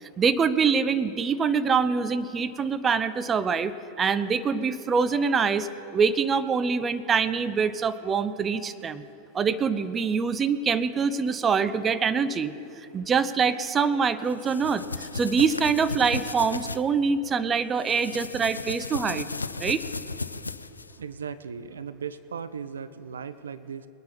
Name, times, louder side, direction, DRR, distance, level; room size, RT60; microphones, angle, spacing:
voice 1, 0.0-9.0 9.3-19.3 19.6-19.8, right 5 dB, 20° right, 12 dB, 0.6 m, -25 dB
sound 1, 14.3-16.8 17.8-21.0, left 3 dB, 80° left, 0.4 m, -35 dB
voice 2, 21.0-23.9, right 6 dB, 70° right, 13 dB, 0.4 m, -37 dB
21.5 x 9.4 x 4.3 m, 2.8 s
figure-of-eight pair, 90°, 0 cm